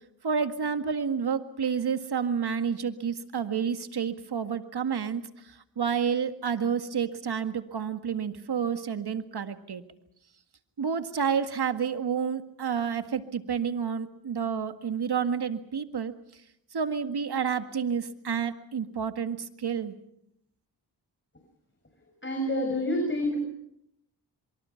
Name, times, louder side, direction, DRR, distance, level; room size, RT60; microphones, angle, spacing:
voice 1, 0.2-9.8 10.8-16.1 16.7-20.0, right 7 dB, 65° right, 9 dB, 1.9 m, -30 dB
voice 2, 22.2-23.4, left 1 dB, 25° left, 3 dB, 6.4 m, -27 dB
26.0 x 24.0 x 5.8 m, 0.77 s
cardioid pair, 40°, 42 cm